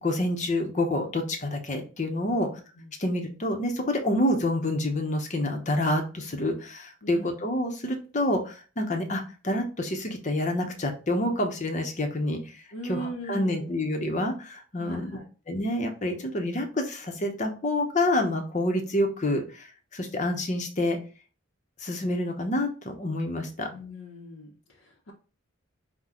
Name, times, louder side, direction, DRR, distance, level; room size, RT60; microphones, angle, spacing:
voice 1, 0.0-2.5 3.0-12.4 12.9-15.2 15.5-19.7 19.9-21.0 21.8-23.7, left 1 dB, 35° left, 4 dB, 0.8 m, -28 dB
voice 2, 12.7-13.7 14.8-15.3 23.7-25.1, right 1 dB, 85° left, -4 dB, 0.9 m, -39 dB
5.8 x 2.3 x 3.6 m, 0.36 s
head